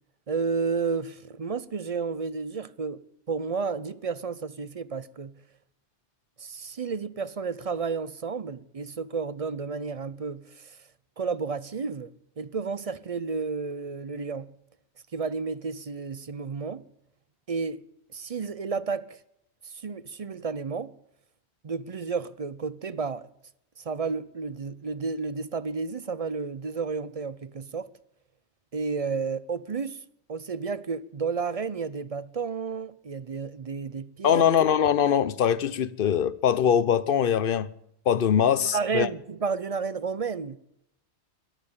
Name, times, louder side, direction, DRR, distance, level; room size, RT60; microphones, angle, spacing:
voice 1, 0.3-3.0 3.3-5.4 6.4-10.7 11.2-12.1 12.4-14.5 15.1-16.8 17.5-17.8 18.1-19.2 19.7-20.9 21.6-23.3 23.8-27.9 28.7-30.0 30.3-34.5 38.6-40.6, right 5 dB, 40° right, 0.6 m, -31 dB
voice 2, 34.2-37.7 38.1-39.1, left 8 dB, 55° left, 0.9 m, -22 dB
14.0 x 12.0 x 8.7 m
omnidirectional pair, 1.2 m